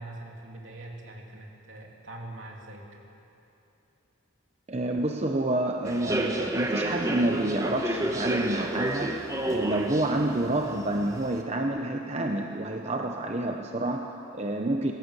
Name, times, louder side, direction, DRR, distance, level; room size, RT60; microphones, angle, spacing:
voice 1, 0.0-3.0, right 2 dB, 65° right, 0 dB, 3.2 m, -43 dB
voice 2, 4.7-9.2 9.5-14.9, right 1 dB, 30° right, 3 dB, 0.8 m, -28 dB
Human voice / Subway metro underground, 5.8-11.4, right 1 dB, 15° right, 1.4 m, -31 dB
20.5 x 17.0 x 8.2 m, 2.8 s
head